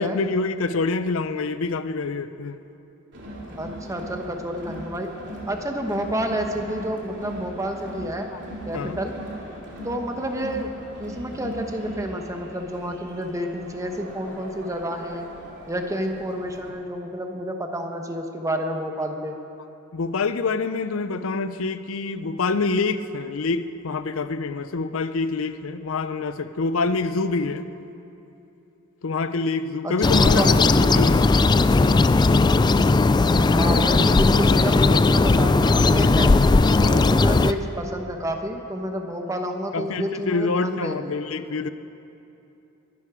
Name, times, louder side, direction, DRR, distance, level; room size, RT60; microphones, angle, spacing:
voice 1, 0.0-2.6 8.3-8.4 8.7-9.0 19.9-27.7 29.0-30.4 30.9-31.3 31.8-32.1 34.9-35.0 39.7-41.7, left 3 dB, 75° left, 12 dB, 0.6 m, -26 dB
Crowd, 3.1-16.7, right 1 dB, 60° right, 2.7 m, -39 dB
voice 2, 3.6-5.1 5.5-8.3 8.7-9.1 9.8-10.7 11.0-15.3 15.7-19.4 29.8-31.1 33.3-36.3 36.8-41.1, equal, 15° right, 4 dB, 1.2 m, -29 dB
sound 1, 30.0-37.5, left 3 dB, 20° left, 0.3 m, -17 dB
22.0 x 11.5 x 5.0 m, 2.8 s
head